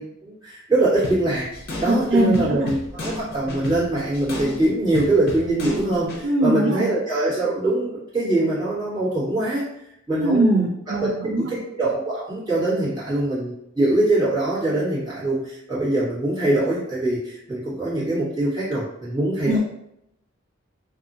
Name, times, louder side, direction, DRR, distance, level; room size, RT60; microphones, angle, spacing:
voice 1, 0.0-1.5 1.8-9.6 10.1-19.6, right 2 dB, 20° right, -11 dB, 1.4 m, -23 dB
sound 1, 1.0-6.2, left 2 dB, 50° left, 0.6 m, -33 dB
voice 2, 1.9-2.7 6.2-6.9 10.1-11.5 19.5-19.6, right 1 dB, 60° right, 0 dB, 0.3 m, -21 dB
2.7 x 2.4 x 2.6 m, 0.79 s
head